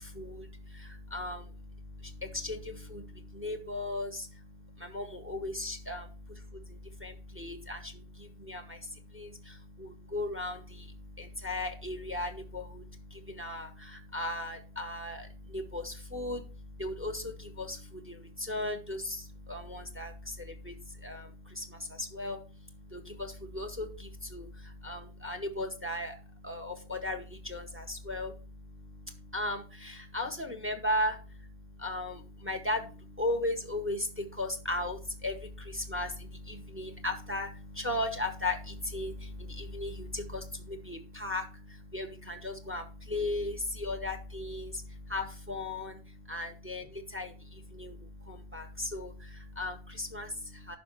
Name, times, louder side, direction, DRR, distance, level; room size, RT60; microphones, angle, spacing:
voice 1, 0.0-1.5 2.0-4.3 4.8-6.4 6.7-12.9 13.1-16.4 16.8-22.4 22.9-26.2 26.4-28.3 29.3-31.2 31.8-46.0 46.3-50.8, left 1 dB, 10° right, 7 dB, 0.9 m, -37 dB
9.6 x 5.9 x 4.0 m, 0.35 s
omnidirectional pair, 1.2 m